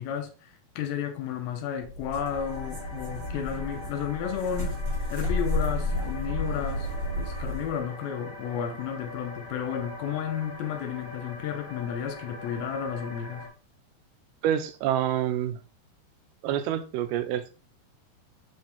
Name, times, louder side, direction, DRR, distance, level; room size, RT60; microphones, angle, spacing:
voice 1, 0.0-4.8 5.1-6.9 7.2-13.5, left 8 dB, 75° left, 2.5 m, -32 dB
sound 1, 1.9-7.8, left 2 dB, 40° right, 1.0 m, -31 dB
sound 2, 2.2-13.5, left 2 dB, 50° left, 1.5 m, -43 dB
voice 2, 14.4-15.6 16.4-17.5, right 10 dB, 85° right, 2.6 m, -27 dB
8.2 x 3.3 x 3.5 m
omnidirectional pair, 4.6 m